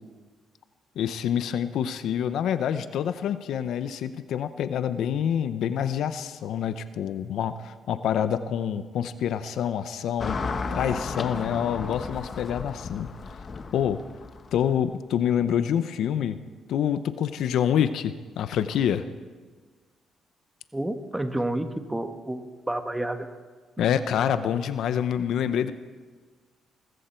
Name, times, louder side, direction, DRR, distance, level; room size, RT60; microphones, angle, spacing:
voice 1, 1.0-10.4 10.7-13.1 13.7-14.0 14.5-16.4 16.7-19.1 23.8-25.7, left 9 dB, 75° left, 12 dB, 0.7 m, -26 dB
Car passing by / Traffic noise roadway noise, 10.2-14.8, left 4 dB, 40° left, 1.1 m, -34 dB
voice 2, 20.7-23.3, right 1 dB, 10° right, 7 dB, 1.3 m, -30 dB
21.0 x 14.5 x 4.5 m, 1.4 s
cardioid pair, 90°, 0 cm